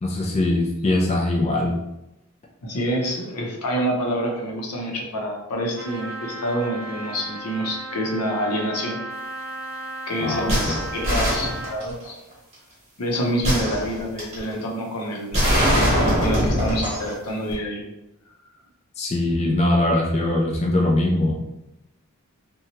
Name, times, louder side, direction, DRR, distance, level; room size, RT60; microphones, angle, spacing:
voice 1, 0.0-1.8 10.2-10.8 19.0-21.4, left 1 dB, 30° left, -2 dB, 0.4 m, -22 dB
voice 2, 2.6-9.0 10.1-12.2 13.0-15.4 16.2-17.9, equal, 85° left, 0 dB, 0.7 m, -27 dB
Trumpet, 5.8-11.8, right 1 dB, 60° right, 0.5 m, -35 dB
sound 1, 10.5-12.1 13.4-14.4 15.3-17.1 17.5-17.6, equal, 30° right, 1.1 m, -22 dB
2.8 x 2.2 x 2.8 m, 0.91 s
head